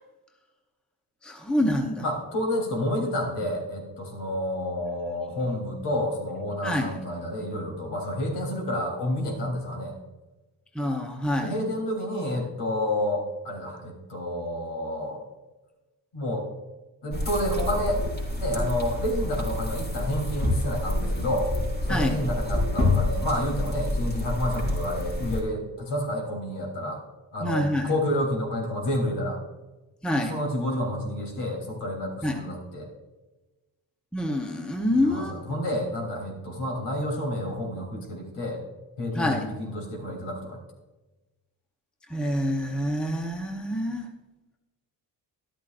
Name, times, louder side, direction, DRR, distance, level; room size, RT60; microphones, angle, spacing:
voice 1, 1.2-2.0 6.6-6.9 10.7-11.5 21.9-22.2 27.4-27.9 30.0-30.3 32.2-32.4 34.1-35.4 39.1-39.5 42.1-44.1, left 1 dB, ahead, 3 dB, 0.8 m, -26 dB
voice 2, 2.0-9.9 11.4-15.2 16.1-16.5 17.0-18.0 18.4-21.5 21.8-27.0 27.3-29.4 30.2-32.9 35.0-38.6 39.0-40.6, left 1 dB, 70° left, 1 dB, 3.5 m, -29 dB
sound 1, 17.1-25.4, left 1 dB, 25° left, 3.7 m, -28 dB
13.0 x 12.5 x 2.5 m, 1.1 s
cardioid pair, 170°, 43 cm